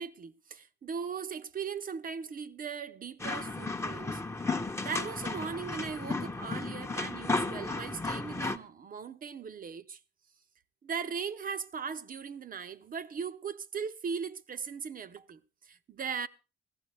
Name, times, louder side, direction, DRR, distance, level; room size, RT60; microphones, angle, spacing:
voice 1, 0.0-4.2 4.8-10.0 10.8-16.3, right 6 dB, 45° right, 0.8 m, -38 dB
sound 1, 3.2-8.6, left 3 dB, 15° left, 0.9 m, -34 dB
17.5 x 14.5 x 3.2 m
cardioid pair, 90°, 20 cm